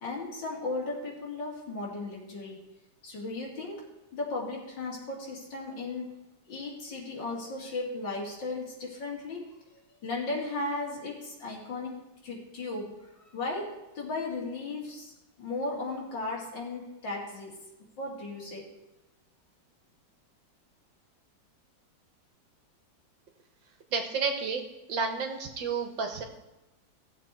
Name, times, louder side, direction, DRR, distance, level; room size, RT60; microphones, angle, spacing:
voice 1, 0.0-2.7 3.0-6.1 6.5-15.1 15.4-17.6 18.0-18.7, left 2 dB, 80° left, -2 dB, 3.1 m, -36 dB
voice 2, 23.9-24.6 24.9-26.2, right 5 dB, 80° right, 4 dB, 2.1 m, -31 dB
15.5 x 7.3 x 4.3 m, 0.99 s
omnidirectional pair, 2.0 m